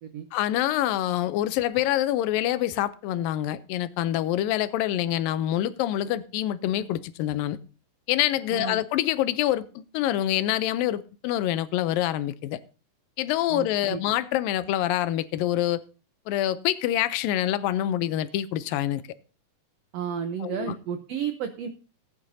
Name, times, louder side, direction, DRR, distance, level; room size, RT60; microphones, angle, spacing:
voice 1, 0.3-7.6 8.1-12.6 13.2-15.8 16.3-19.0 20.4-20.7, left 13 dB, 85° left, 2.4 m, -26 dB
voice 2, 13.5-14.0 19.9-21.7, right 8 dB, 90° right, 1.4 m, -32 dB
18.5 x 9.7 x 2.7 m
omnidirectional pair, 3.9 m